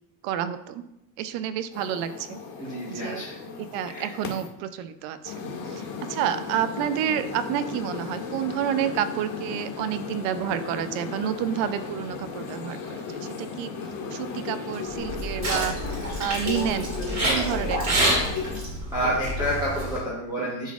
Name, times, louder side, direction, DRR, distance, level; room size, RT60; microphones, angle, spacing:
voice 1, 0.2-0.8 1.2-2.4 2.9-3.2 3.6-13.7 14.1-16.9 17.2-18.0 18.2-18.3, right 10 dB, 70° right, 11 dB, 0.7 m, -29 dB
sound 1, 1.7-4.5 5.2-18.6, left 5 dB, 65° left, 1.8 m, -35 dB
voice 2, 2.6-3.6 3.8-4.0 18.9-20.7, equal, 10° right, -7 dB, 1.1 m, -29 dB
sound 2, 14.9-20.0, right 1 dB, 35° right, 2.4 m, -28 dB
11.0 x 4.0 x 2.4 m, 0.89 s
cardioid pair, 155°, 50 cm